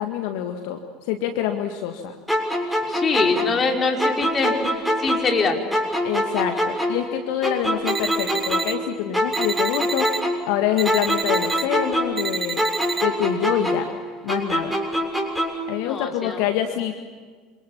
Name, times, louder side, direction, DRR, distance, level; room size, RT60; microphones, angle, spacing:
voice 1, 0.0-2.2 6.0-10.1 10.5-12.6 13.0-13.9 14.2-14.8 15.7-16.9, left 10 dB, 60° left, 6 dB, 1.9 m, -26 dB
sound 1, 2.3-5.4 5.7-8.9 9.1-12.3 12.6-15.7, equal, 5° left, 6.9 m, -24 dB
voice 2, 2.9-5.6 15.8-16.4, left 4 dB, 30° left, 2 dB, 5.1 m, -24 dB
sound 2, 7.9-8.7 9.3-10.2 10.8-11.6 12.2-13.0, right 6 dB, 25° right, 2.9 m, -29 dB
28.0 x 27.5 x 7.3 m, 1.5 s
figure-of-eight pair, 70°, 0 cm